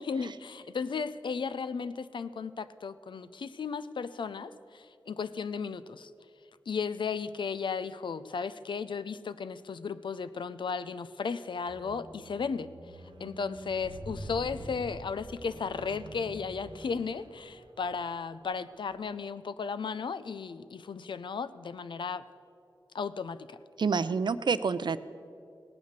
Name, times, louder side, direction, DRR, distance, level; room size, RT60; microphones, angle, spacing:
voice 1, 0.1-6.1 6.7-12.7 13.2-22.2 22.9-23.6, left 5 dB, 85° left, 14 dB, 0.5 m, -35 dB
Squeak, 11.7-18.0 18.8-18.9, right 2 dB, 85° right, 1.1 m, -46 dB
voice 2, 23.8-25.0, right 5 dB, 70° right, 14 dB, 0.5 m, -27 dB
17.0 x 9.5 x 6.6 m, 2.5 s
wide cardioid pair, 80°, 8 cm